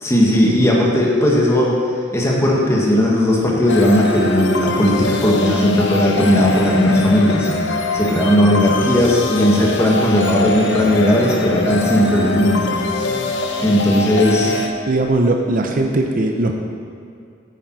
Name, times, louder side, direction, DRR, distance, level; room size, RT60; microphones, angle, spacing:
voice 1, 0.0-1.8 2.1-12.8 13.6-14.6, left 1 dB, 15° left, -3 dB, 1.7 m, -16 dB
sound 1, 3.7-14.7, left 2 dB, 65° left, 0.9 m, -23 dB
voice 2, 14.9-16.5, right 2 dB, 45° right, 3 dB, 0.7 m, -18 dB
10.0 x 9.0 x 4.7 m, 2.4 s
head